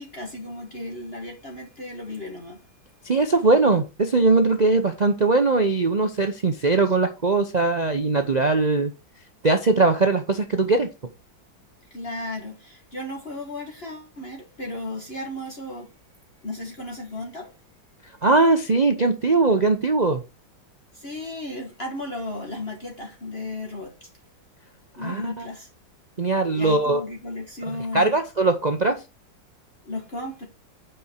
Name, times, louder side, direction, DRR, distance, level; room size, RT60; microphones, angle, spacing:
voice 1, 0.0-2.6 11.9-15.9 16.4-17.5 20.9-24.1 24.9-25.7 26.5-28.1 29.8-30.5, left 2 dB, 35° left, 1.7 m, -34 dB
voice 2, 3.0-8.9 9.4-10.9 18.2-20.2 25.0-25.5 26.2-27.0 27.7-29.0, right 3 dB, 60° right, 0.4 m, -20 dB
8.7 x 5.4 x 4.4 m
omnidirectional pair, 2.1 m